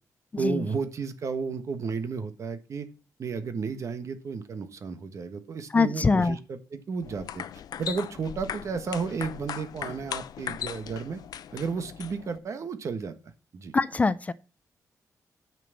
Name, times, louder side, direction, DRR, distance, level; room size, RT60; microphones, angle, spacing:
voice 1, 0.4-2.9 3.2-7.4 7.8-11.2 11.5-13.1 13.5-13.7, right 5 dB, 50° right, 1.4 m, -33 dB
voice 2, 5.7-6.4 13.7-14.3, left 4 dB, 25° left, 0.4 m, -23 dB
sound 1, 7.0-12.4, left 9 dB, 85° left, 0.6 m, -38 dB
9.3 x 6.0 x 7.1 m
wide cardioid pair, 155°, 6 cm